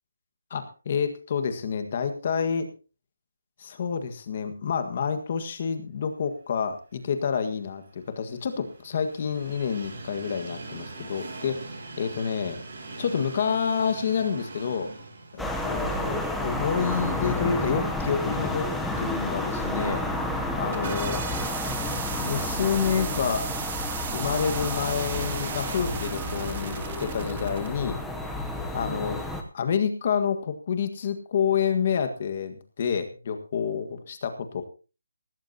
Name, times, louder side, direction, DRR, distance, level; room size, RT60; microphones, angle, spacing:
voice 1, 0.5-2.7 3.6-11.6 12.0-12.6 13.0-14.9 15.3-18.7 19.0-20.0 20.6-21.2 22.0-23.5 24.1-28.0 28.7-29.2 29.5-34.6, left 6 dB, 30° left, 8 dB, 1.7 m, -28 dB
Train, 7.3-17.4 17.8-17.9 19.0-19.1, right 3 dB, 40° right, 6.5 m, -42 dB
sound 1, 15.4-29.4, left 1 dB, ahead, 0.9 m, -31 dB
sound 2, 20.6-27.7, right 7 dB, 25° right, 1.9 m, -36 dB
17.5 x 16.0 x 2.9 m, 0.34 s
hypercardioid pair, 175°, 0 cm